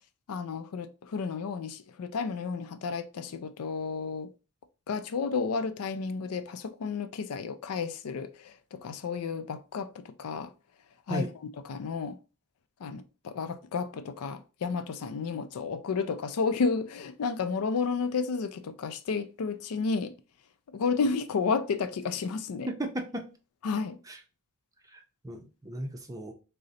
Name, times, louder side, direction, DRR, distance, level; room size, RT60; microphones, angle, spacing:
voice 1, 0.3-4.3 4.9-10.5 11.1-11.3 11.7-12.2 12.8-20.1 20.7-22.7 23.6-24.0, left 5 dB, 90° left, 0.4 m, -32 dB
voice 2, 22.7-23.3 24.1-24.2 24.9-26.3, right 1 dB, 15° right, 0.5 m, -35 dB
3.8 x 2.0 x 4.0 m
head